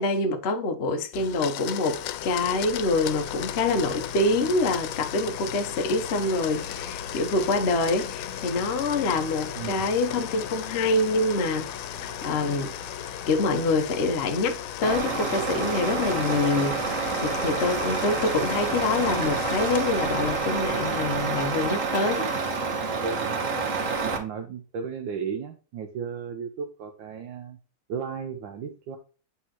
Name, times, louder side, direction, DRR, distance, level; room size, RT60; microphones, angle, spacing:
voice 1, 0.0-11.7 12.0-12.7 13.3-22.3, left 2 dB, 55° left, 0.7 m, -26 dB
Domestic sounds home sounds, 1.1-20.3, left 13 dB, 85° left, 1.5 m, -38 dB
sound 1, 1.9-21.1, left 6 dB, 70° left, 1.6 m, -39 dB
voice 2, 9.6-9.9 22.3-22.5 23.0-23.5 24.0-27.6 27.9-29.0, right 6 dB, 70° right, 1.3 m, -35 dB
Truck, 14.8-24.2, right 4 dB, 45° right, 1.2 m, -28 dB
8.0 x 4.2 x 2.9 m
omnidirectional pair, 2.3 m